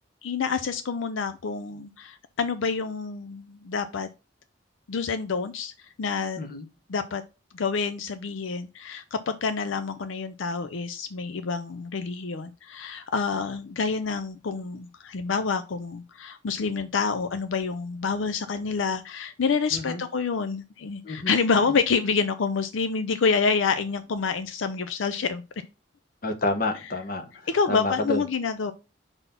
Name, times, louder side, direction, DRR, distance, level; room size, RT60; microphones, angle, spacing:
voice 1, 0.2-4.1 4.9-6.4 6.9-7.2 7.5-25.4 27.5-28.7, left 5 dB, 85° left, 0.5 m, -27 dB
voice 2, 19.7-20.0 21.0-21.3 21.7-21.8 26.2-28.2, left 2 dB, 50° left, 1.1 m, -29 dB
5.3 x 4.1 x 5.6 m
head